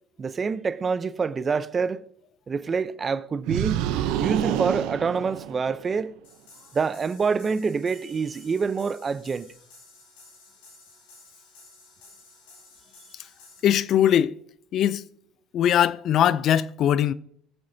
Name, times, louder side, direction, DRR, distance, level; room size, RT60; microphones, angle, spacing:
voice 1, 0.2-2.0 2.5-3.8 4.2-6.1 6.7-9.5, right 5 dB, 30° right, 0.7 m, -26 dB
sound 1, 3.5-5.9, right 12 dB, 70° right, 0.7 m, -27 dB
sound 2, 6.2-13.6, left 3 dB, 80° left, 5.6 m, -53 dB
voice 2, 13.6-14.4 14.7-15.0 15.5-17.1, left 10 dB, 55° left, 0.5 m, -21 dB
21.0 x 7.6 x 2.8 m
hypercardioid pair, 80°, 0 cm